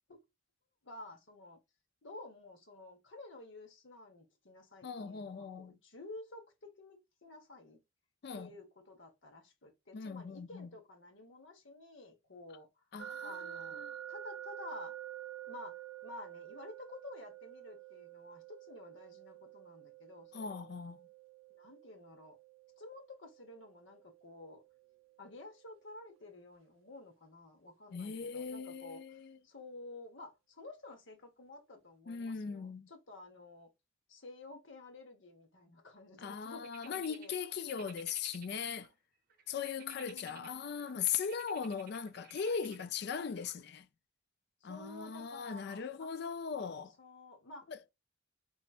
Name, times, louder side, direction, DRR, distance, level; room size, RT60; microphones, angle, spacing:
voice 1, 0.8-1.6 2.0-7.8 8.3-12.8 13.2-14.9 15.5-20.7 21.5-22.4 22.8-24.6 25.2-33.7 34.1-37.3 39.5-40.7 44.6-46.1 47.0-47.7, left 2 dB, 75° left, 1.2 m, -52 dB
voice 2, 4.8-5.8 8.2-8.5 9.9-10.7 12.9-13.9 20.3-21.0 27.9-29.4 32.1-32.9 36.2-38.9 39.5-43.9 44.6-47.0 47.7-47.9, left 6 dB, 55° left, 0.4 m, -39 dB
sound 1, 13.0-25.9, right 11 dB, 85° right, 0.4 m, -49 dB
sound 2, 36.6-38.9 39.3-43.6, right 8 dB, 45° right, 0.7 m, -56 dB
4.4 x 3.1 x 2.4 m
head